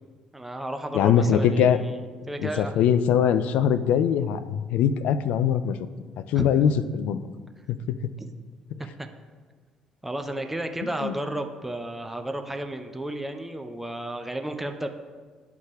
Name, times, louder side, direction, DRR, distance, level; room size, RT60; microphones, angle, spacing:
voice 1, 0.3-2.0 2.3-2.9 6.3-6.6 8.2-8.3 8.8-9.1 10.0-14.9, right 1 dB, 10° right, 6 dB, 0.6 m, -33 dB
voice 2, 0.9-1.8 2.4-5.8 6.2-7.2 7.7-8.1 11.0-11.1, left 8 dB, 60° left, 12 dB, 0.3 m, -22 dB
11.0 x 4.7 x 2.3 m, 1.5 s
figure-of-eight pair, 50°, 2 cm